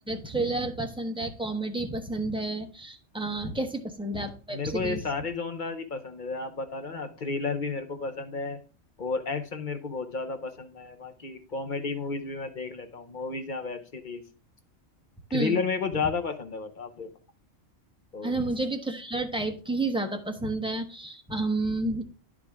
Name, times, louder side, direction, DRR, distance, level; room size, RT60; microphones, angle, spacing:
voice 1, 0.1-5.0 15.3-15.6 18.2-22.0, right 2 dB, 5° right, 4 dB, 0.7 m, -30 dB
voice 2, 4.5-8.6 9.0-14.2 15.3-17.1 18.1-18.4, left 4 dB, 45° left, 7 dB, 0.9 m, -32 dB
10.5 x 4.9 x 3.5 m, 0.36 s
omnidirectional pair, 1.3 m